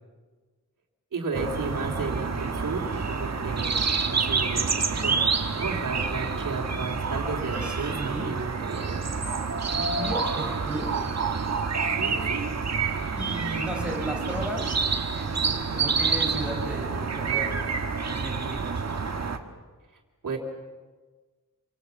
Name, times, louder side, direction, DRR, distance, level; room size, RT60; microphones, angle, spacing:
voice 1, 1.1-4.7 5.0-5.1 5.5-9.1 12.0-12.5 20.2-20.4, right 4 dB, 70° right, -4 dB, 3.3 m, -33 dB
sound 1, 1.3-19.4, right 5 dB, 55° right, 1.8 m, -28 dB
voice 2, 7.6-8.3 9.8-11.0 13.1-14.7 15.1-18.8, right 1 dB, 5° right, -1 dB, 6.1 m, -35 dB
26.5 x 25.0 x 7.2 m, 1.4 s
wide cardioid pair, 140°, 32 cm